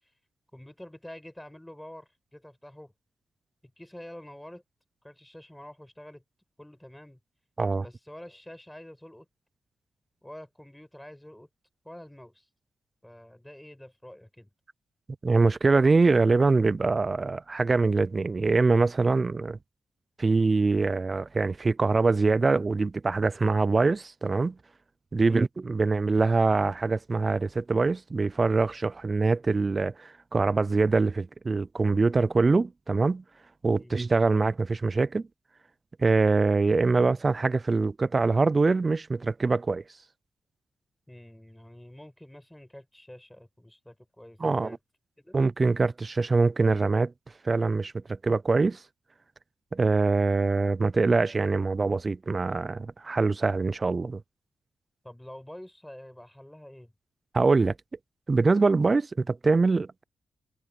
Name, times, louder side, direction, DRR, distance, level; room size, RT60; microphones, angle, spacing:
voice 1, 0.5-2.9 3.6-4.6 5.0-6.2 6.6-7.2 7.8-9.3 10.2-11.5 11.8-12.5 13.0-14.5 25.2-25.5 33.8-33.9 41.1-44.8 45.2-45.4 55.0-56.9, left 1 dB, 10° left, 7.7 m, -47 dB
voice 2, 15.2-19.6 20.2-24.6 25.1-33.2 33.6-35.3 36.0-39.8 44.4-44.8 45.3-47.1 47.4-48.8 49.7-54.2 57.3-57.7 58.3-60.0, right 3 dB, 40° right, 0.6 m, -24 dB
supercardioid pair, 40°, 0 cm